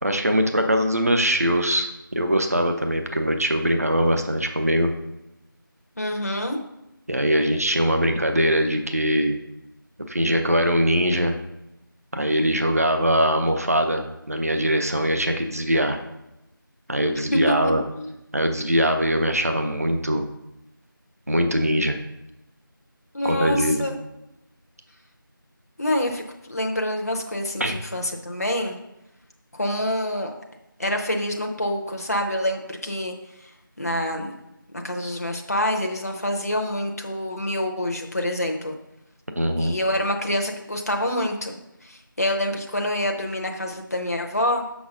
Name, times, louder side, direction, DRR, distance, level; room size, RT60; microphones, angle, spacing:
voice 1, 0.0-4.9 7.1-9.3 10.1-11.3 12.1-16.0 16.9-17.8 18.3-20.2 21.3-22.0 23.2-23.8 27.6-27.8 39.4-39.8, equal, 45° right, 5 dB, 0.7 m, -22 dB
voice 2, 6.0-6.6 17.2-18.1 23.1-24.0 25.8-26.2 26.5-28.8 29.5-30.3 30.8-33.1 33.4-33.5 33.8-34.3 34.7-38.7 39.6-44.6, left 1 dB, 45° left, 2 dB, 0.7 m, -26 dB
6.9 x 6.1 x 3.7 m, 0.91 s
figure-of-eight pair, 175°, 12 cm